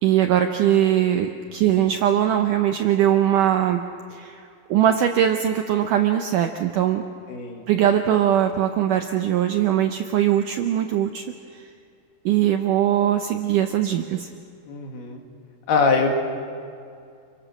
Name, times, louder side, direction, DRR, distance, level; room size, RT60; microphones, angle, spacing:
voice 1, 0.0-3.8 4.1-4.4 4.7-7.0 7.7-11.2 11.5-11.6 12.3-14.3, right 10 dB, 75° right, 6 dB, 1.9 m, -21 dB
voice 2, 7.3-7.7 14.7-15.2 15.7-16.2, left 4 dB, 75° left, 3 dB, 4.1 m, -22 dB
29.0 x 23.5 x 6.4 m, 2.4 s
omnidirectional pair, 4.7 m